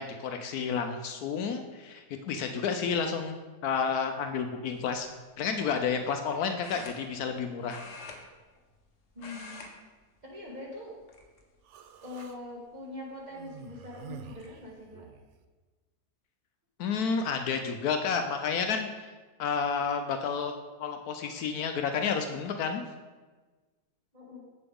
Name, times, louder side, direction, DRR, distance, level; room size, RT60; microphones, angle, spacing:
voice 1, 0.0-3.4 3.6-5.1 5.4-7.8 16.8-19.1 19.4-20.5 20.8-22.8, left 6 dB, 75° left, 6 dB, 1.0 m, -30 dB
sound 1, 4.7-5.0 6.6-7.4 7.7-8.9 9.1-9.7 10.0-10.3 11.0-11.6 12.2-12.3 13.7-13.8 14.1-14.5, left 3 dB, 50° left, 1.1 m, -46 dB
voice 2, 9.1-9.6 10.2-11.0 12.0-15.1 21.2-21.5 24.1-24.5, left 2 dB, 30° right, -4 dB, 1.6 m, -43 dB
Human voice, 11.6-12.4 13.3-15.3, right 7 dB, 75° right, 0.6 m, -48 dB
7.7 x 6.8 x 3.6 m, 1.3 s
omnidirectional pair, 1.7 m